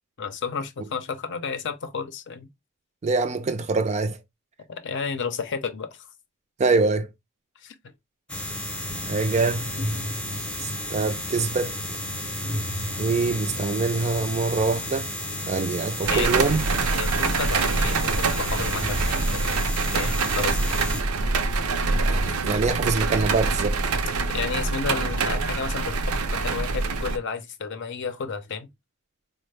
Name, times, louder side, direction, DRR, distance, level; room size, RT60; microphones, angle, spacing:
voice 1, 0.2-2.5 4.7-6.1 7.6-7.7 16.1-16.3 16.9-20.8 24.3-28.7, left 5 dB, 55° left, 0.6 m, -32 dB
voice 2, 3.0-4.2 6.6-7.1 9.1-9.6 10.6-11.7 13.0-15.1 15.5-16.6 21.9-23.8, right 3 dB, 30° right, 0.4 m, -24 dB
sound 1, 8.3-21.0, left 1 dB, 5° left, 0.7 m, -32 dB
sound 2, 16.0-27.2, right 3 dB, 85° right, 0.5 m, -25 dB
4.2 x 2.0 x 3.2 m
head